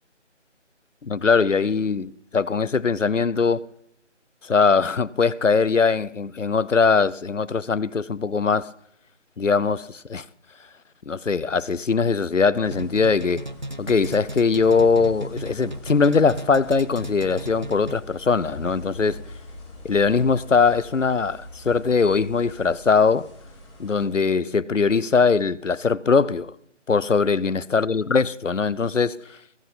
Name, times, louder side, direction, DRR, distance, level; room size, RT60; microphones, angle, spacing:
voice 1, 1.0-3.7 4.4-8.7 9.4-10.3 11.1-13.4 13.8-19.2 19.8-23.3 23.8-26.5 26.9-29.4, left 5 dB, 90° left, 0.8 m, -21 dB
sound 1, 12.6-24.1, left 1 dB, 25° left, 4.7 m, -42 dB
sound 2, 12.7-18.2, right 1 dB, 40° right, 0.5 m, -35 dB
21.0 x 8.4 x 5.3 m
figure-of-eight pair, 160°, 37 cm